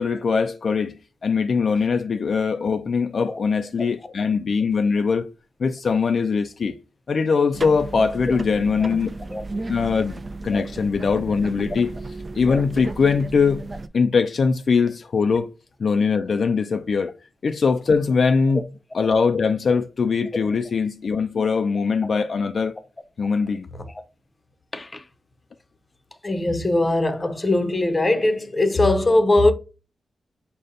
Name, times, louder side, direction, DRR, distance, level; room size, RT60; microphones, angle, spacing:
voice 1, 0.0-5.3 5.6-6.8 7.1-9.1 9.7-11.9 12.3-13.7 13.9-15.5 15.8-17.1 17.4-18.6 18.9-22.8 23.2-23.7, left 5 dB, 60° left, 0.3 m, -21 dB
sound 1, 7.5-13.9, right 2 dB, 35° right, 0.3 m, -34 dB
voice 2, 24.7-25.0 26.2-29.5, left 2 dB, 25° left, 0.6 m, -21 dB
5.1 x 2.1 x 3.9 m
cardioid pair, 80°, 0 cm